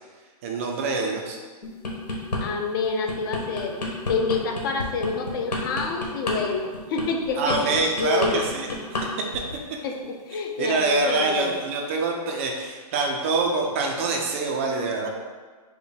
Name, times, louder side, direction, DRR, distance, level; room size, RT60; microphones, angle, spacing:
voice 1, 0.4-1.4 7.4-8.7 9.2-9.3 10.6-15.1, right 3 dB, 20° right, 1 dB, 0.3 m, -25 dB
sound 1, 1.6-2.4 2.8-9.1 9.3-9.6, left 2 dB, 85° left, 1.4 m, -30 dB
voice 2, 2.4-8.3 9.8-11.6, left 4 dB, 35° left, 4 dB, 0.5 m, -28 dB
5.5 x 2.1 x 4.5 m, 1.4 s
hypercardioid pair, 150°, 21 cm